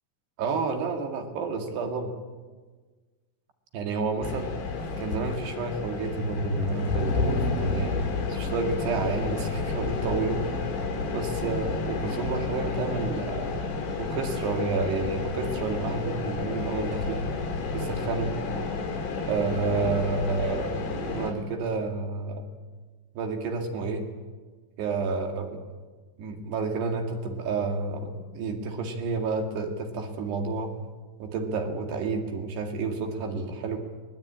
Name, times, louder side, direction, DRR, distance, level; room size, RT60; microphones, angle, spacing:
voice 1, 0.4-2.1 3.7-4.5 5.0-8.0 8.3-10.4 11.1-13.5 14.0-17.2 17.7-18.4 19.3-22.5 23.2-24.1 24.8-25.6 26.2-30.7 31.2-33.8, right 4 dB, 65° right, 3 dB, 4.2 m, -30 dB
sound 1, 4.2-21.3, left 3 dB, 75° left, 5.6 m, -30 dB
23.0 x 20.5 x 8.8 m, 1.4 s
omnidirectional pair, 5.2 m